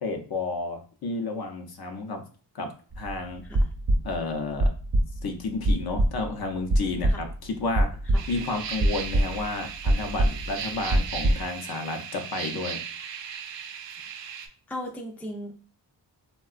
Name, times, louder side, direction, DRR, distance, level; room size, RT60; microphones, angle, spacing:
voice 1, 0.0-2.2 2.5-3.4 4.0-4.7 5.2-12.8, left 3 dB, 55° left, 4 dB, 0.7 m, -31 dB
sound 1, 2.9-3.1 3.4-4.3 4.6-5.2 5.6-6.3 6.7-7.5 7.7-8.4 8.8-9.6 9.9-11.4, right 1 dB, 40° right, 0.7 m, -24 dB
sound 2, 8.1-14.5, right 7 dB, 80° right, 0.5 m, -37 dB
voice 2, 14.0-15.5, left 1 dB, 5° left, 2 dB, 0.4 m, -38 dB
3.5 x 2.2 x 2.4 m, 0.41 s
cardioid pair, 85°, 44 cm